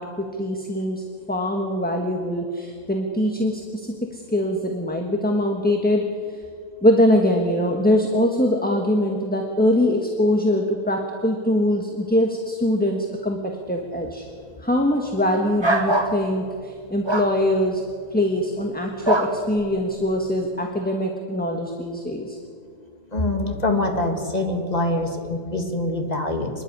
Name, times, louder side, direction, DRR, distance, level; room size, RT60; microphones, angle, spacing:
voice 1, 0.0-6.1 6.8-14.3 14.6-17.8 18.1-22.4, left 1 dB, 5° left, 2 dB, 1.2 m, -23 dB
sound 1, 15.6-16.2 17.1-17.3 19.0-19.3, right 1 dB, 20° right, 1.3 m, -21 dB
voice 2, 23.1-26.5, left 2 dB, 25° left, 4 dB, 2.1 m, -24 dB
25.5 x 11.0 x 9.9 m, 2.2 s
omnidirectional pair, 1.6 m